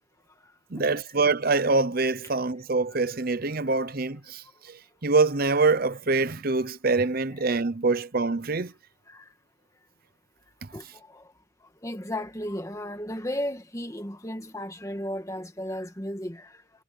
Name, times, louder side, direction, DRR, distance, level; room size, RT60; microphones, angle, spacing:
voice 1, 0.7-8.7, right 3 dB, 45° right, 0.8 m, -25 dB
voice 2, 10.7-11.2 11.8-16.5, left 1 dB, 15° left, 1.7 m, -34 dB
head